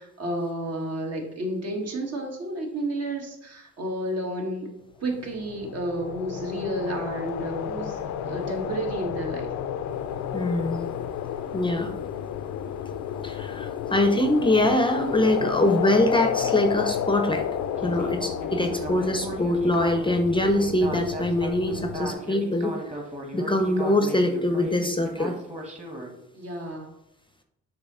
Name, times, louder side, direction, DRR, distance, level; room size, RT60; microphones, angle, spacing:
voice 1, 0.0-4.7 5.0-9.5 26.3-26.9, right 1 dB, 55° right, 1 dB, 1.7 m, -31 dB
sound 1, 5.2-22.1, left 8 dB, 70° left, 0.5 m, -31 dB
voice 2, 10.3-10.9 11.5-11.9 13.2-17.4 17.8-22.7 23.3-25.4, left 1 dB, 15° left, 5 dB, 0.6 m, -23 dB
Speech synthesizer, 17.8-26.1, right 1 dB, 20° right, 1.5 m, -36 dB
6.8 x 2.9 x 5.5 m, 0.80 s
cardioid pair, 90°, 30 cm